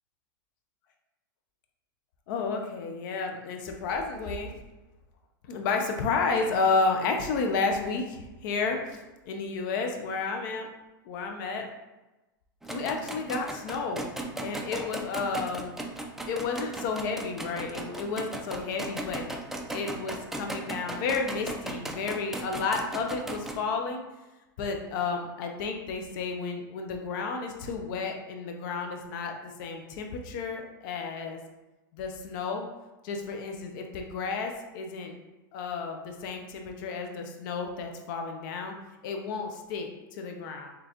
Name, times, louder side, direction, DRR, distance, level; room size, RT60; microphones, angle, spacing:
voice 1, 2.3-4.6 5.5-10.7 11.1-11.7 12.7-14.1 14.4-15.8 16.3-19.2 19.7-24.0 24.6-31.4 31.9-32.7 33.0-35.2 35.5-38.7 39.0-40.7, left 4 dB, 65° left, 3 dB, 0.7 m, -31 dB
sound 1, 12.6-23.6, right 2 dB, 5° right, 0.4 m, -37 dB
4.1 x 3.2 x 2.9 m, 1.1 s
hypercardioid pair, 120°, 12 cm